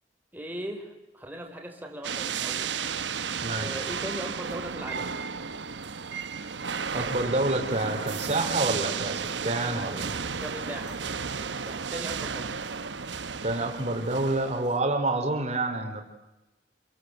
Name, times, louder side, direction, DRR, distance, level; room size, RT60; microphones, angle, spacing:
voice 1, 0.3-2.7 3.5-5.1 10.4-11.0 11.4-12.6, equal, 10° right, 3 dB, 4.4 m, -39 dB
sound 1, 2.0-14.7, right 6 dB, 75° right, 1.1 m, -33 dB
voice 2, 3.4-3.8 6.9-10.1 13.4-16.0, right 2 dB, 40° right, 4 dB, 4.0 m, -28 dB
28.0 x 22.5 x 7.9 m, 1.0 s
head